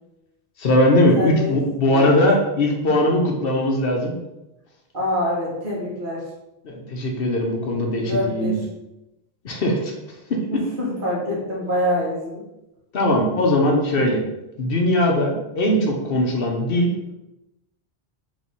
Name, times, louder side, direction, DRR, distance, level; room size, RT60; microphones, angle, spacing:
voice 1, 0.6-4.1 6.6-8.6 9.4-9.9 10.3-10.4 12.9-14.2 14.6-17.1, left 1 dB, 65° left, 1 dB, 0.9 m, -20 dB
voice 2, 1.1-1.6 1.9-2.2 4.9-6.2 8.0-8.6 10.5-12.4, left 1 dB, 55° right, -5 dB, 1.5 m, -25 dB
3.3 x 3.3 x 4.1 m, 0.93 s
omnidirectional pair, 1.1 m